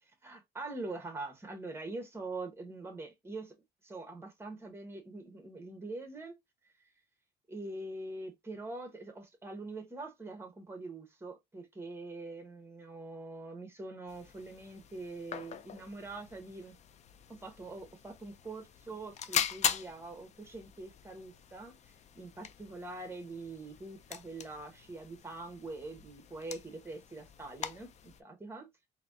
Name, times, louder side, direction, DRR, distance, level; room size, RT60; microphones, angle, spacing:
voice 1, 0.2-3.5 3.8-6.3 7.5-16.7 17.3-21.7 22.1-28.7, right 2 dB, 15° right, 1.1 m, -44 dB
sound 1, 14.1-28.2, left 8 dB, 40° left, 0.4 m, -41 dB
4.1 x 2.7 x 2.4 m
cardioid pair, 110°, 17 cm